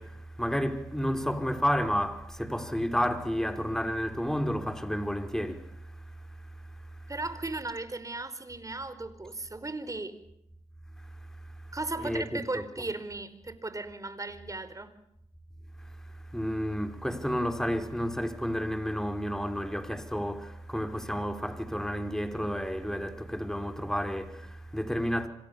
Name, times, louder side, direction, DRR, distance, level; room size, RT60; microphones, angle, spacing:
voice 1, 0.0-7.1 11.0-11.7 12.0-12.6 15.8-25.3, equal, 5° left, 5.1 m, -31 dB
voice 2, 7.1-10.2 11.7-14.9, right 2 dB, 25° right, 4.8 m, -36 dB
29.0 x 26.0 x 7.1 m
hypercardioid pair, 45°, 13 cm